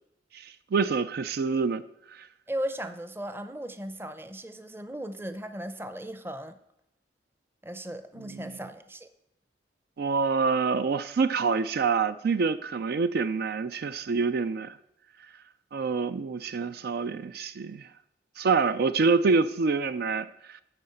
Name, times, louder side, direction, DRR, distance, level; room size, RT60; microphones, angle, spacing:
voice 1, 0.3-1.8 2.1-2.3 8.2-8.4 10.0-14.8 15.7-17.9 18.4-20.6, right 4 dB, 60° right, 0.4 m, -26 dB
voice 2, 2.5-6.6 7.6-9.1, right 1 dB, 15° right, 0.6 m, -37 dB
9.3 x 5.8 x 7.7 m
head